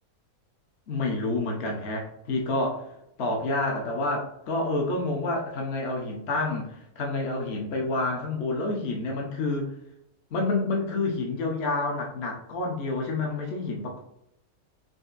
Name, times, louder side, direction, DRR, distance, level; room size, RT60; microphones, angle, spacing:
voice 1, 0.9-2.9 3.2-9.7 10.3-14.0, left 2 dB, 55° left, 0 dB, 0.9 m, -28 dB
5.2 x 2.6 x 2.4 m, 0.79 s
omnidirectional pair, 1.6 m